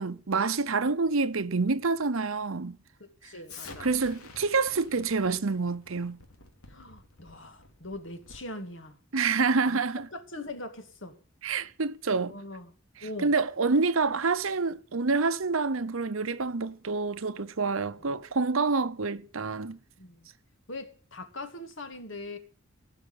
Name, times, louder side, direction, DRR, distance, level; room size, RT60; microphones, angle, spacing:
voice 1, 0.0-2.8 3.8-6.2 9.1-10.1 11.4-12.3 13.2-19.8, right 4 dB, 70° right, 0.9 m, -27 dB
voice 2, 3.0-3.9 6.7-9.0 9.7-9.8 10.1-11.1 12.3-12.7 13.0-13.3 17.9-18.1 20.0-20.3 20.7-22.4, left 2 dB, 60° left, 2.0 m, -41 dB
Explosion, 3.5-8.6, left 3 dB, 90° left, 2.6 m, -49 dB
17.0 x 5.9 x 9.5 m
head